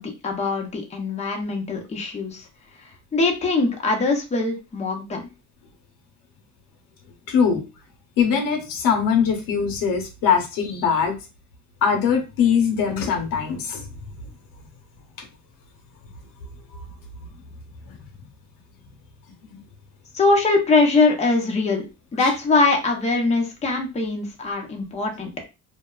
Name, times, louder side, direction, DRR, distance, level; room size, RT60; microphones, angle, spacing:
voice 1, 0.0-2.4 3.1-5.2 20.1-21.8 22.1-25.3, left 3 dB, 20° left, 1 dB, 0.6 m, -22 dB
voice 2, 7.3-7.6 8.2-11.2 11.8-13.9 15.2-15.3 17.8-18.0 19.5-19.6 22.2-22.3, left 6 dB, 90° left, 3 dB, 0.8 m, -22 dB
2.7 x 2.1 x 2.3 m, 0.28 s
cardioid pair, 120°, 33 cm